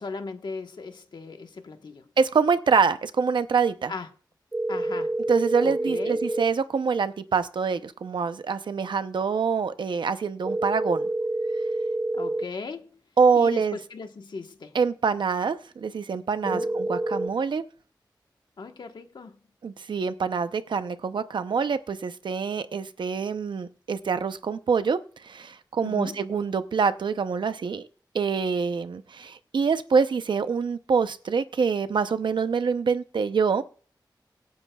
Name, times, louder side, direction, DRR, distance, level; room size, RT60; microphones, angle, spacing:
voice 1, 0.0-2.1 3.9-4.1 4.7-5.1 5.6-6.2 12.1-13.0 13.3-14.8 16.4-16.8 18.6-19.4 25.8-26.3, left 4 dB, 70° left, 1.3 m, -38 dB
voice 2, 2.2-3.9 5.3-11.1 13.2-13.8 14.7-17.6 19.6-25.0 25.2-27.9 28.1-33.6, right 5 dB, 85° right, 0.7 m, -25 dB
sound 1, 4.5-6.4 10.4-12.4 16.4-17.3, right 1 dB, 25° right, 0.7 m, -27 dB
25.0 x 9.6 x 2.4 m
wide cardioid pair, 110°, 8 cm